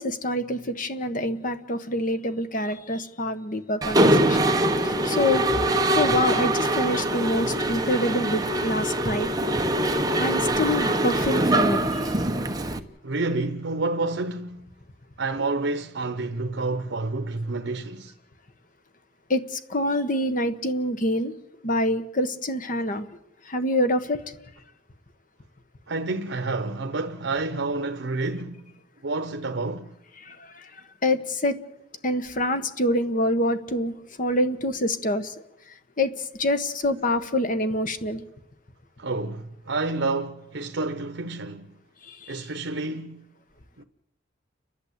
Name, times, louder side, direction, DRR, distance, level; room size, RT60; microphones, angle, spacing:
voice 1, 0.0-4.4 4.8-5.6 5.9-9.3 10.2-12.0 19.3-21.3 21.6-23.1 23.5-24.2 30.3-30.7 31.0-31.6 32.0-35.3 36.0-36.1 36.4-38.2 42.1-42.4, left 1 dB, 45° left, 1.3 m, -26 dB
Mechanisms, 3.8-12.8, right 1 dB, 20° right, 1.1 m, -23 dB
voice 2, 13.0-14.7 15.2-18.1 25.9-28.6 29.0-29.9 39.0-41.7 42.3-43.3 43.8-43.9, right 3 dB, 80° right, 0.9 m, -29 dB
30.0 x 11.5 x 8.2 m
head